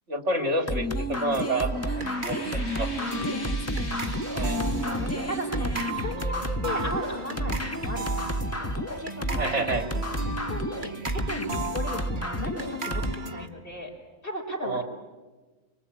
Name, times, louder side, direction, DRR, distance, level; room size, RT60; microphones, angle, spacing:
voice 1, 0.1-1.9 2.2-2.9 4.3-4.6 9.4-9.9 14.6-14.8, right 2 dB, 65° right, 5 dB, 3.3 m, -29 dB
sound 1, 0.7-13.1, equal, 15° left, 1.0 m, -31 dB
sound 2, 1.3-13.5, right 2 dB, 40° right, 1.7 m, -36 dB
sound 3, 1.4-6.7, left 2 dB, 60° left, 3.7 m, -44 dB
voice 2, 3.0-3.5 4.5-13.9 14.2-14.8, left 1 dB, 45° left, 1 dB, 4.9 m, -36 dB
25.5 x 24.0 x 8.7 m, 1.2 s
omnidirectional pair, 1.3 m